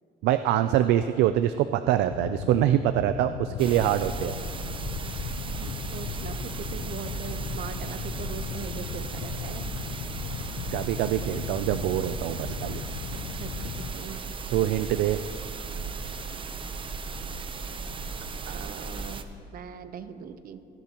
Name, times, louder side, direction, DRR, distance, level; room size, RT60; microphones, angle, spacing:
voice 1, 0.2-4.4 10.7-12.8 14.5-15.2, right 12 dB, 85° right, 10 dB, 0.4 m, -24 dB
sound 1, 2.1-13.9, left 10 dB, 80° left, 0.5 m, -37 dB
sound 2, 3.6-19.2, right 4 dB, 30° right, 0.7 m, -36 dB
voice 2, 5.5-9.7 13.3-14.2 18.4-20.6, right 7 dB, 60° right, 10 dB, 0.9 m, -41 dB
28.0 x 11.0 x 3.0 m, 2.6 s
cardioid pair, 110°, 17 cm